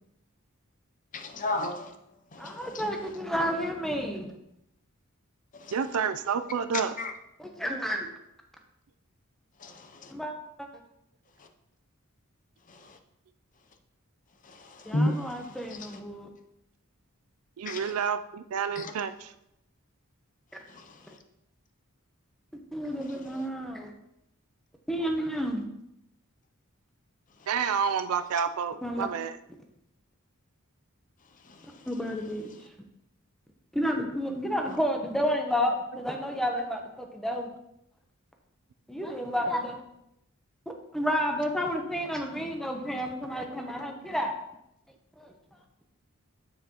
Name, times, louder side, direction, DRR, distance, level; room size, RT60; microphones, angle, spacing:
voice 1, 1.1-1.9 2.3-2.8 5.6-5.7 7.0-7.1 9.6-10.1 12.7-13.0 14.4-15.9 17.7-17.9 18.8-18.9 20.7-21.0 31.5-31.6, left 1 dB, 35° left, 6 dB, 0.6 m, -33 dB
voice 2, 2.4-4.4 7.4-8.1 10.1-10.3 10.6-10.7 14.8-16.3 22.7-23.9 24.9-25.7 28.8-29.1 31.9-32.5 33.7-37.5 38.9-39.8 40.9-44.3 45.2-45.3, equal, ahead, 3 dB, 0.8 m, -31 dB
voice 3, 5.7-7.0 17.6-19.3 27.5-29.4, right 6 dB, 85° right, 11 dB, 0.4 m, -29 dB
7.5 x 6.5 x 2.9 m, 0.82 s
head